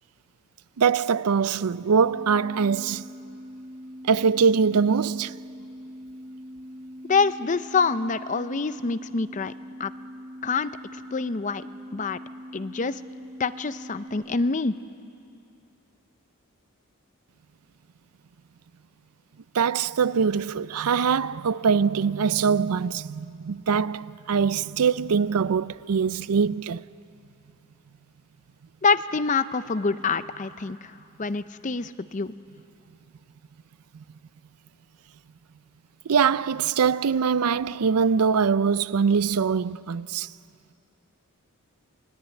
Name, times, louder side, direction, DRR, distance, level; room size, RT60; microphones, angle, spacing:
voice 1, 0.8-3.0 4.0-5.4 19.5-26.8 36.1-40.3, right 6 dB, 85° right, 0.5 m, -23 dB
sound 1, 2.0-14.1, equal, 5° right, 3.8 m, -42 dB
voice 2, 7.1-9.5 9.8-9.9 10.4-10.7 11.1-11.6 11.9-12.2 12.5-13.0 13.4-14.7 28.8-32.3, left 4 dB, 35° left, 0.6 m, -26 dB
28.0 x 19.0 x 9.0 m
head